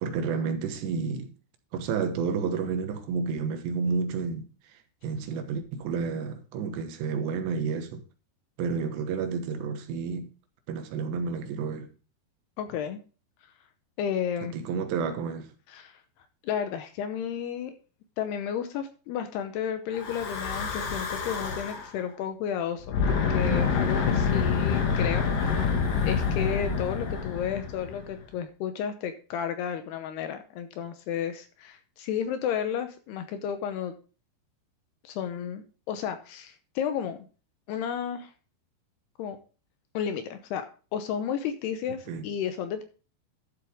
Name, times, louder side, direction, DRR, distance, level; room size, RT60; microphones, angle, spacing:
voice 1, 0.0-1.3 1.7-8.0 8.6-10.3 10.7-11.9 14.4-15.5 42.1-42.3, right 5 dB, 80° right, 3.2 m, -30 dB
voice 2, 12.6-13.0 14.0-14.5 15.7-16.0 16.4-17.8 18.2-25.3 25.6-34.0 35.0-37.2 37.7-38.3 39.2-39.4 39.9-40.7 40.9-42.8, left 8 dB, 75° left, 2.7 m, -32 dB
Breathing / Wind, 19.9-21.9 22.8-28.2, left 6 dB, 60° left, 3.0 m, -27 dB
12.0 x 7.3 x 3.6 m
omnidirectional pair, 5.1 m